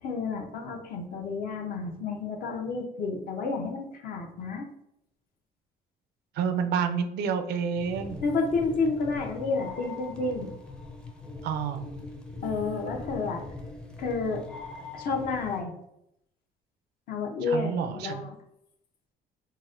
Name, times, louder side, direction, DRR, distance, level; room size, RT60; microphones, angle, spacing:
voice 1, 0.0-4.7 8.2-10.5 12.4-13.4 14.0-14.4 14.9-15.7 17.1-18.3, left 4 dB, 60° left, 2 dB, 0.7 m, -30 dB
voice 2, 6.4-8.2 11.4-11.9 17.5-18.2, right 6 dB, 75° right, 7 dB, 0.4 m, -29 dB
sound 1, 7.8-15.6, left 3 dB, 5° left, 0.5 m, -41 dB
3.9 x 2.1 x 2.5 m, 0.77 s
cardioid pair, 110°, 17 cm